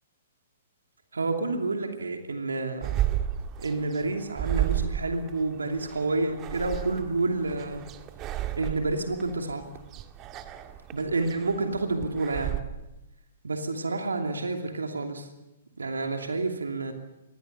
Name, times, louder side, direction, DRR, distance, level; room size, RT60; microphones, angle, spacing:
voice 1, 1.1-3.0 3.6-7.9 8.6-9.7 10.9-12.6 13.4-15.3 15.8-16.9, right 3 dB, 75° right, 4 dB, 2.7 m, -29 dB
sound 1, 2.8-12.6, right 12 dB, 25° right, 1.9 m, -33 dB
25.5 x 21.5 x 6.9 m, 0.98 s
figure-of-eight pair, 115°, 0 cm